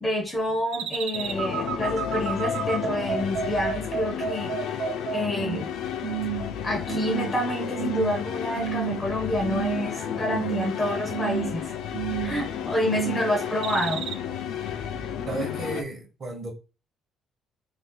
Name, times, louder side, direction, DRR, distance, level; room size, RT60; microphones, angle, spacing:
voice 1, 0.0-5.7 6.6-11.7 12.2-14.0, left 1 dB, 15° left, 0.5 m, -28 dB
sound 1, 0.7-5.7 6.0-6.5 6.9-7.4 7.8-8.2 8.6-9.1 9.4-10.0 10.3-10.8 11.1-11.6 11.9-12.4 12.8-13.3 13.6-14.1, right 10 dB, 65° right, 0.4 m, -31 dB
sound 2, 1.1-15.8, left 8 dB, 65° left, 0.3 m, -32 dB
voice 2, 15.3-16.5, right 2 dB, 30° right, 0.8 m, -33 dB
2.5 x 2.3 x 3.6 m
cardioid pair, 175°, 0 cm